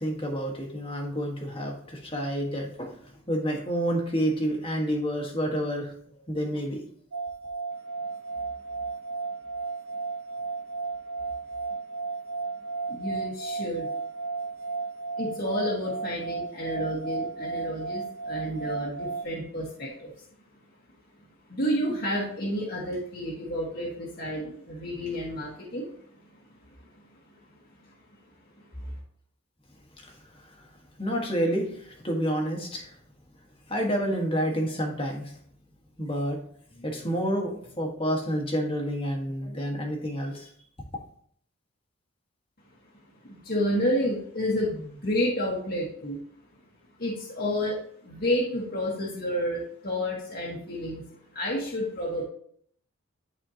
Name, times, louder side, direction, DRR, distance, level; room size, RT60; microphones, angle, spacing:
voice 1, 0.0-3.0 3.3-5.9 6.3-6.8 30.0-30.2 30.5-30.6 31.0-32.9 33.7-35.3 36.0-36.4 36.7-40.5, equal, 25° left, 1 dB, 1.4 m, -29 dB
sound 1, 7.1-19.2, right 4 dB, 70° right, 0.5 m, -34 dB
voice 2, 12.9-13.9 15.2-20.1 21.5-25.9 28.8-28.9 43.2-46.2 47.0-51.0 51.3-52.2, equal, 45° left, -5 dB, 1.4 m, -30 dB
11.5 x 4.2 x 2.9 m, 0.62 s
head